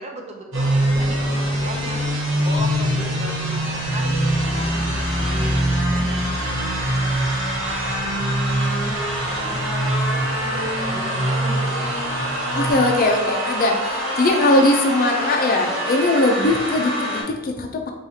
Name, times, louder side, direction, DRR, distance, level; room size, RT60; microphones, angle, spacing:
voice 1, 0.0-4.2 4.5-12.0 14.4-14.6, right 1 dB, 35° right, 1 dB, 0.5 m, -37 dB
sound 1, 0.5-17.2, equal, 70° right, 1.2 m, -25 dB
sound 2, 2.6-12.7, right 1 dB, ahead, 1.0 m, -26 dB
voice 2, 12.5-17.9, left 2 dB, 45° left, 3 dB, 0.4 m, -20 dB
4.7 x 2.4 x 2.7 m, 1.0 s
head